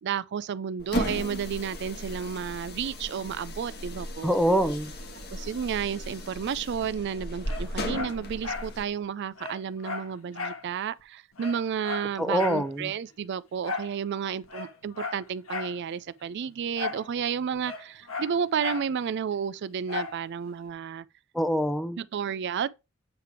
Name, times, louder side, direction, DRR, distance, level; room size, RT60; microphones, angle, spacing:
voice 1, 0.0-4.4 5.3-21.0 22.0-22.7, right 7 dB, 55° right, 0.4 m, -32 dB
sound 1, 0.8-8.9, left 1 dB, 50° left, 1.3 m, -36 dB
voice 2, 4.2-4.9 12.2-12.9 21.3-22.0, equal, ahead, 0.6 m, -25 dB
Dog, 7.4-8.7 9.0-9.1 9.4-10.7 11.0-11.1 11.4-12.7 13.6-14.0 14.4-15.8 16.7-17.1 17.3-18.9 19.9-20.2 20.7-20.8, left 4 dB, 80° left, 1.5 m, -35 dB
8.1 x 3.4 x 4.6 m
head